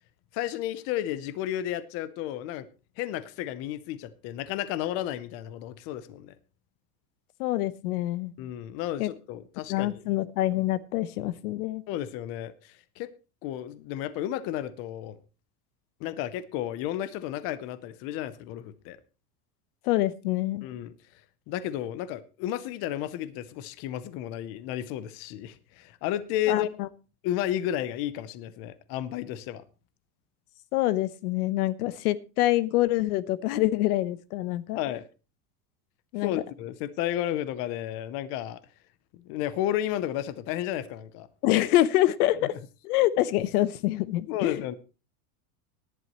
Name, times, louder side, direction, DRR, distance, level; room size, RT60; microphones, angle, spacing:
voice 1, 0.3-2.7 3.0-6.3 8.4-9.9 11.9-13.1 13.4-15.2 16.0-19.0 20.6-20.9 21.5-26.7 27.2-29.6 34.7-35.0 36.2-38.6 39.1-41.3 42.4-42.5 44.3-44.8, left 12 dB, 30° left, 0.6 m, -32 dB
voice 2, 7.4-8.3 9.0-9.1 9.7-11.8 19.8-20.6 26.5-26.9 30.7-34.8 36.1-36.3 41.4-42.5 42.8-44.6, left 15 dB, 85° left, 1.0 m, -26 dB
17.5 x 11.0 x 3.0 m
supercardioid pair, 175°, 44 cm